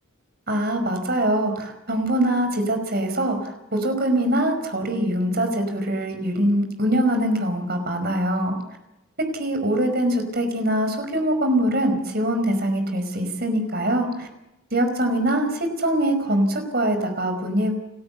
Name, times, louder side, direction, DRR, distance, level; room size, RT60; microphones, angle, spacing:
voice 1, 0.5-8.6 9.4-14.3 14.7-17.8, right 1 dB, 50° right, 6 dB, 5.1 m, -23 dB
29.5 x 13.5 x 8.3 m, 0.89 s
head